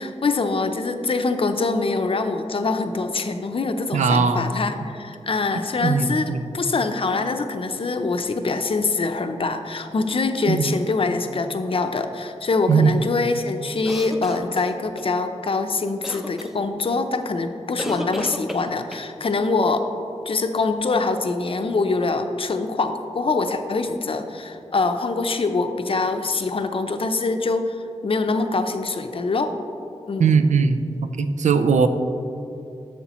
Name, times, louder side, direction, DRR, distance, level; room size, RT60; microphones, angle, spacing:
voice 1, 0.0-19.8 20.3-29.5 30.1-30.3, left 3 dB, 50° left, 7 dB, 0.6 m, -24 dB
voice 2, 3.9-4.5 5.8-6.5 10.5-10.7 12.7-12.9 30.2-30.8 31.2-31.9, right 5 dB, 85° right, 9 dB, 0.5 m, -19 dB
sound 1, 13.8-15.1 16.0-16.5 17.8-19.1, equal, ahead, 0.5 m, -33 dB
11.0 x 7.1 x 3.0 m, 2.7 s
wide cardioid pair, 90°, 12 cm